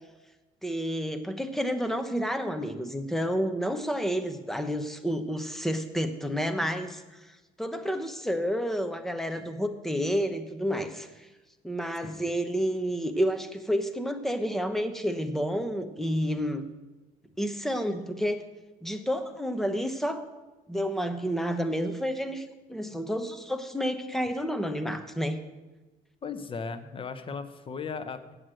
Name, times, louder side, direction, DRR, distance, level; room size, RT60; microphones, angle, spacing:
voice 1, 0.6-7.0 7.6-11.3 11.6-16.6 17.4-18.4 18.8-20.2 20.7-25.4, equal, ahead, 7 dB, 0.9 m, -30 dB
voice 2, 26.2-28.3, left 5 dB, 30° left, 10 dB, 0.9 m, -37 dB
7.9 x 7.9 x 7.7 m, 1.2 s
cardioid pair, 110°, 17 cm